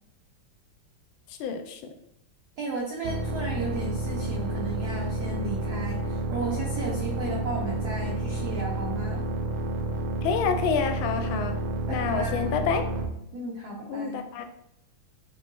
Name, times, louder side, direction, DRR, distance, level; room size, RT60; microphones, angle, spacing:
voice 1, 1.4-1.8 10.2-11.5 11.9-12.8 13.9-14.4, left 6 dB, 85° left, 7 dB, 1.4 m, -28 dB
voice 2, 2.6-9.2 11.9-12.7 13.3-14.2, right 2 dB, 65° right, -3 dB, 1.1 m, -34 dB
sound 1, 3.0-13.1, right 1 dB, 85° right, 1.4 m, -30 dB
5.3 x 2.8 x 2.6 m, 0.79 s
omnidirectional pair, 2.2 m